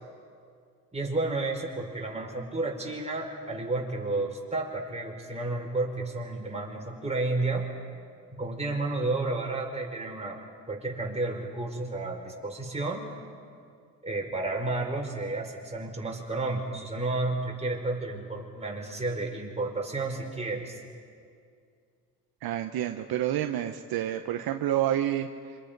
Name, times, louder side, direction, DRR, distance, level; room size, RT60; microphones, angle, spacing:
voice 1, 0.9-7.7 8.3-10.4 10.7-13.1 14.0-20.8, right 2 dB, 15° right, 0 dB, 5.3 m, -31 dB
voice 2, 22.4-25.6, right 11 dB, 75° right, 6 dB, 1.0 m, -29 dB
27.0 x 26.0 x 5.4 m, 2.3 s
cardioid pair, 80°, 37 cm